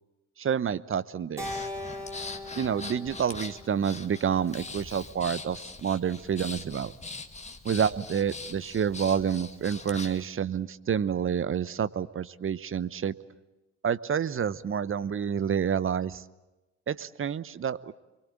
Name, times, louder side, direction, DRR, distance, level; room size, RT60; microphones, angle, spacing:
voice 1, 0.4-1.7 2.6-6.9 7.6-13.1 13.8-16.2 16.9-17.9, right 8 dB, 35° right, 16 dB, 1.0 m, -28 dB
Breathing, 1.4-10.3, left 3 dB, 15° left, 2.0 m, -42 dB
Keyboard (musical), 1.4-5.8, left 2 dB, 10° right, 5.8 m, -41 dB
25.5 x 23.5 x 8.8 m, 1.0 s
hypercardioid pair, 55°, 39 cm